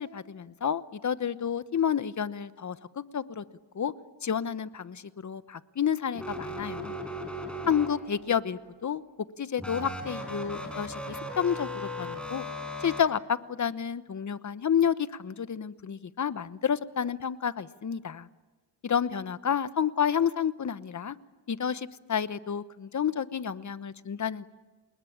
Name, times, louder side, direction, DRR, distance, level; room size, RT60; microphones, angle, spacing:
voice 1, 0.0-3.4 3.7-3.9 4.2-7.0 7.7-9.0 9.4-12.4 12.8-18.3 18.8-21.2 21.5-24.4, left 8 dB, 40° left, 14 dB, 1.0 m, -30 dB
sound 1, 6.1-8.3 9.6-13.0, left 1 dB, ahead, 5.1 m, -37 dB
27.5 x 21.0 x 8.8 m, 1.2 s
cardioid pair, 90°, 44 cm